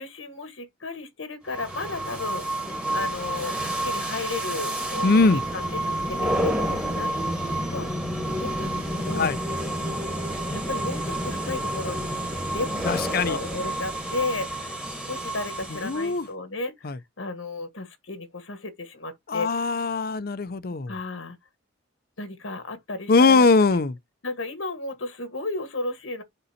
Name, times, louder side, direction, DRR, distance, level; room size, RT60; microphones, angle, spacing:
voice 1, 0.0-2.4 2.9-7.1 7.7-9.3 10.3-12.0 12.5-19.5 20.9-21.4 22.2-23.5 24.2-26.2, left 3 dB, 80° left, 1.5 m, -34 dB
sound 1, 1.5-16.3, right 1 dB, 5° right, 1.2 m, -29 dB
voice 2, 5.0-5.4 9.2-9.4 12.8-13.4 15.8-16.3 16.8-17.0 19.3-20.9 23.1-23.9, left 3 dB, 50° left, 0.6 m, -21 dB
6.7 x 5.4 x 2.8 m
head